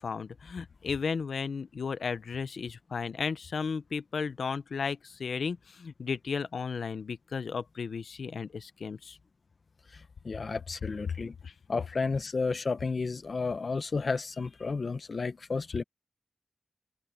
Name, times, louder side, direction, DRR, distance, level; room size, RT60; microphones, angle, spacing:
voice 1, 0.0-9.2 11.4-11.5, left 5 dB, 85° left, 0.7 m, -34 dB
voice 2, 10.2-11.3 11.7-15.8, left 4 dB, 55° left, 0.9 m, -32 dB
wide cardioid pair, 110°, 0 cm